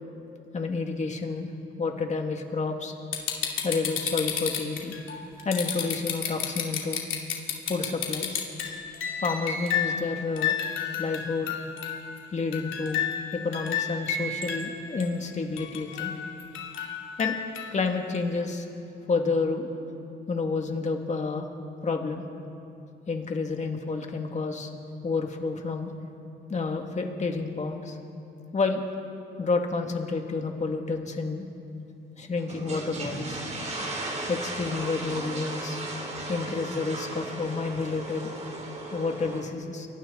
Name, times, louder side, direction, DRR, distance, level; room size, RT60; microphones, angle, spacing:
voice 1, 0.5-1.5 1.8-2.9 3.6-4.9 5.4-7.0 7.7-8.4 9.2-10.6 11.0-11.6 12.3-16.1 17.2-17.3 17.7-18.7 19.1-19.7 20.3-21.5 21.8-22.2 23.1-24.7 25.0-25.9 26.5-28.0 28.5-28.8 29.4-31.5 32.2-33.4 34.3-35.8 36.3-38.3 38.9-39.9, left 4 dB, 35° left, 3 dB, 2.4 m, -29 dB
sound 1, 3.1-10.0 10.4-12.2 12.5-14.7 15.0-15.1 15.6-17.8 18.1-18.2, left 8 dB, 75° left, 2.9 m, -30 dB
sound 2, 32.4-39.4, right 2 dB, 35° right, 3.8 m, -36 dB
29.5 x 23.0 x 4.1 m, 2.8 s
cardioid pair, 90°, 20 cm